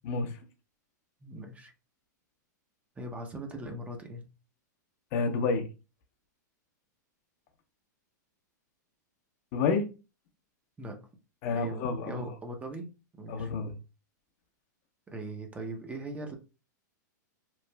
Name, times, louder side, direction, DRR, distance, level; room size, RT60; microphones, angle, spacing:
voice 1, 0.0-0.4 5.1-5.7 9.5-9.8 11.4-12.1 13.3-13.7, left 4 dB, 50° left, 0.6 m, -29 dB
voice 2, 1.2-1.7 3.0-4.3 10.8-11.0 11.5-12.9 13.2-13.5 15.1-16.4, right 1 dB, 15° right, 0.6 m, -40 dB
3.0 x 2.4 x 2.2 m
hypercardioid pair, 120°, 10 cm